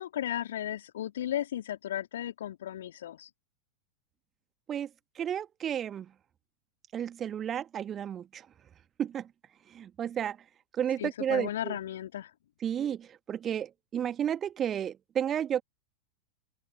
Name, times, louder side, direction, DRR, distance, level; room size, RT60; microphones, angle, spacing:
voice 1, 0.0-3.3 11.0-12.3, left 11 dB, 60° left, 3.3 m, -35 dB
voice 2, 5.2-6.1 6.9-8.4 9.0-9.2 9.7-10.4 10.8-11.8 12.6-15.6, right 9 dB, 25° right, 1.8 m, -32 dB
open air
figure-of-eight pair, 90°, 0 cm